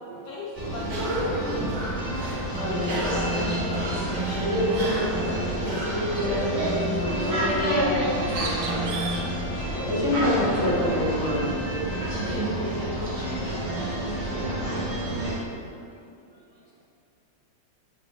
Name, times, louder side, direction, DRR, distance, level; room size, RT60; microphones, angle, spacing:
voice 1, 0.2-2.0 2.6-4.2, left 1 dB, 70° left, -4 dB, 1.1 m, -38 dB
sound 1, 0.5-15.3, right 1 dB, 25° right, 0.7 m, -28 dB
Cough, 0.8-6.6, right 1 dB, 55° right, 1.2 m, -34 dB
voice 2, 2.5-2.8 4.3-8.8 9.9-11.5, left 1 dB, 35° left, -7 dB, 1.5 m, -27 dB
Bird, 8.0-12.8, right 3 dB, 90° right, 1.6 m, -40 dB
voice 3, 11.6-11.9 12.3-12.6 13.9-14.6 15.5-15.6, right 9 dB, 70° right, -3 dB, 0.9 m, -43 dB
5.5 x 3.8 x 5.0 m, 2.4 s
omnidirectional pair, 2.2 m